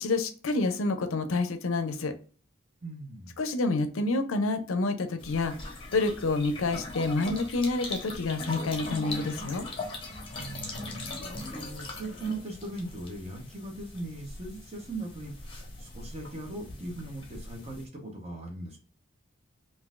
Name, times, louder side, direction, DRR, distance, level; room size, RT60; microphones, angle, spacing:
voice 1, 0.0-2.1 3.4-5.6 5.9-9.7, left 3 dB, 70° left, 8 dB, 0.5 m, -28 dB
voice 2, 2.8-3.4 10.3-18.8, right 2 dB, 30° right, 1 dB, 0.9 m, -40 dB
sound 1, 5.2-17.9, left 2 dB, 25° left, 0.8 m, -40 dB
3.8 x 2.5 x 2.4 m, 0.39 s
head